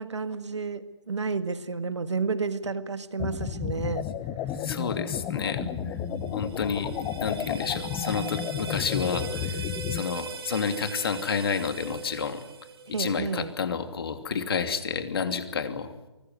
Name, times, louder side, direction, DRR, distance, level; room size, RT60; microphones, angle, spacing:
voice 1, 0.0-4.1 5.6-6.5 12.9-13.5, right 4 dB, 70° right, 12 dB, 1.8 m, -31 dB
sound 1, 3.2-10.0, left 9 dB, 15° left, 1.0 m, -32 dB
voice 2, 4.6-6.0 6.3-6.9 7.2-9.6 9.9-12.4 13.0-15.9, left 6 dB, 50° left, 9 dB, 2.9 m, -30 dB
sound 2, 6.2-13.2, right 5 dB, 55° right, 4.2 m, -40 dB
24.0 x 20.5 x 9.5 m, 1.0 s
figure-of-eight pair, 145°, 15 cm